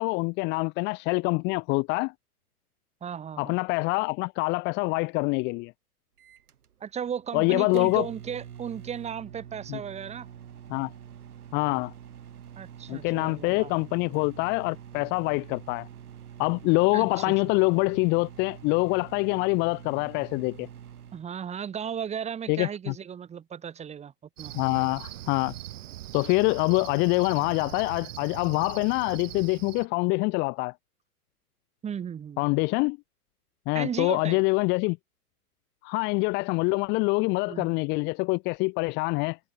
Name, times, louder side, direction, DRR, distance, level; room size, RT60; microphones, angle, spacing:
voice 1, 0.0-2.1 3.4-5.7 7.3-8.1 9.7-9.8 10.7-10.9 11.5-11.9 12.9-15.9 16.4-20.7 22.5-22.9 24.5-25.5 26.1-30.7 32.4-33.0 33.7-35.0 35.8-39.4, left 28 dB, 25° left, 1.1 m, -25 dB
voice 2, 3.0-3.6 6.8-10.3 12.6-13.7 16.9-17.3 21.1-24.1 24.4-24.5 31.8-32.4 33.7-34.4 37.5-37.7, right 8 dB, 15° right, 6.5 m, -35 dB
Microwave oven, 6.2-21.3, right 9 dB, 70° right, 6.9 m, -46 dB
Cricket, 24.4-29.9, right 13 dB, 55° right, 2.9 m, -41 dB
hypercardioid pair, 145°, 46 cm